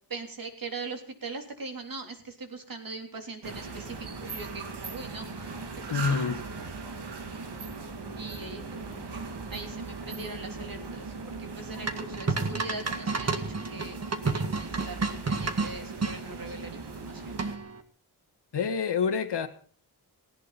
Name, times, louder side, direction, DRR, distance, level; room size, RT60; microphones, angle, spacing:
voice 1, 0.1-5.5 5.9-6.4 8.2-14.0 14.2-17.4, right 3 dB, 55° right, 3 dB, 3.7 m, -41 dB
sound 1, 3.4-17.6, right 4 dB, 80° right, 2.7 m, -39 dB
voice 2, 5.9-6.4 18.5-19.5, left 5 dB, 85° left, 8 dB, 1.9 m, -27 dB
sound 2, 11.9-16.2 17.4-17.8, right 4 dB, 40° right, 1.7 m, -30 dB
18.0 x 17.0 x 4.3 m, 0.42 s
wide cardioid pair, 105°, 40 cm